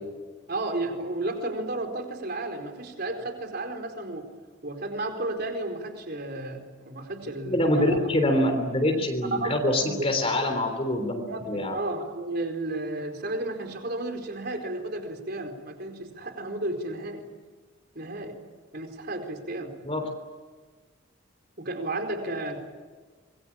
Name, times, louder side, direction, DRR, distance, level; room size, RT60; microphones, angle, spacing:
voice 1, 0.5-4.2 4.6-8.0 8.9-9.0 9.3-9.6 9.9-10.0 11.3-17.3 17.9-18.4 18.7-19.8 21.6-22.6, right 2 dB, 45° right, 5 dB, 4.4 m, -33 dB
voice 2, 7.5-11.8 19.8-20.1, left 1 dB, 25° left, 4 dB, 3.6 m, -25 dB
26.5 x 22.5 x 8.8 m, 1.5 s
head